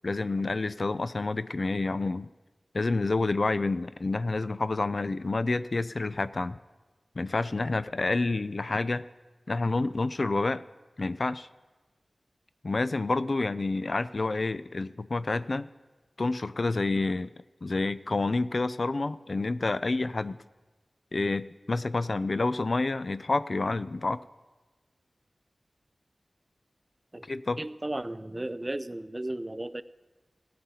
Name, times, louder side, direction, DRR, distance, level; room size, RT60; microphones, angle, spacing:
voice 1, 0.0-2.3 2.7-6.6 7.2-9.0 9.5-10.6 11.0-11.5 12.6-15.7 16.2-17.3 17.6-20.4 21.1-24.2 27.3-27.6, left 3 dB, 55° left, 15 dB, 0.3 m, -28 dB
voice 2, 27.6-29.8, right 1 dB, 25° right, 14 dB, 0.4 m, -34 dB
16.5 x 9.5 x 4.2 m, 1.2 s
wide cardioid pair, 75°, 0 cm